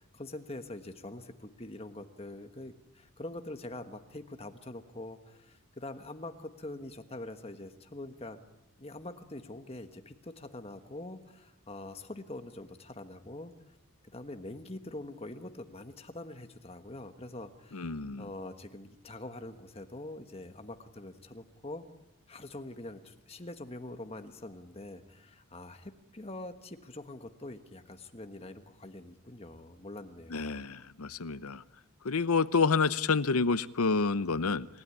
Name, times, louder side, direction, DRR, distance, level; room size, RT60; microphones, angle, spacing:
voice 1, 0.0-8.4 8.8-13.5 14.1-21.8 22.3-30.4, left 2 dB, 25° left, 7 dB, 1.4 m, -44 dB
voice 2, 17.7-18.3 30.3-31.6 32.0-34.7, left 4 dB, 85° left, 15 dB, 0.8 m, -28 dB
28.0 x 16.5 x 9.8 m, 0.97 s
head